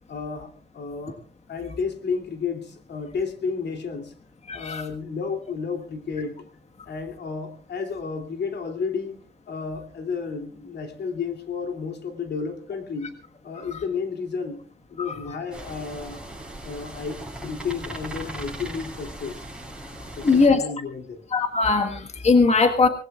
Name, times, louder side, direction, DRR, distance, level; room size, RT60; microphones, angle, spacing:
voice 1, 0.1-1.2 1.5-4.1 4.5-6.5 6.9-9.2 9.5-13.1 13.4-14.6 14.9-16.2 16.6-19.4 20.2-21.3, left 5 dB, 80° left, 5 dB, 2.8 m, -32 dB
voice 2, 4.5-4.9 15.0-15.1 20.2-20.6 21.3-22.9, left 4 dB, 40° left, 5 dB, 1.5 m, -20 dB
sound 1, 15.5-20.5, right 1 dB, 5° right, 6.8 m, -38 dB
25.5 x 20.0 x 2.4 m, 0.42 s
wide cardioid pair, 125°, 18 cm